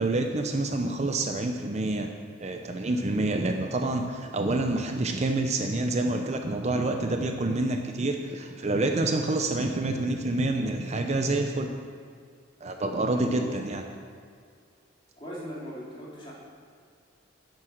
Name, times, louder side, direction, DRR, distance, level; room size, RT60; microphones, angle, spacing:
voice 1, 0.0-2.1 2.4-11.7 12.6-13.8, right 2 dB, 35° right, 4 dB, 0.7 m, -27 dB
voice 2, 13.1-13.6 15.2-16.3, equal, 25° left, -6 dB, 2.9 m, -39 dB
9.6 x 7.6 x 6.5 m, 2.2 s
head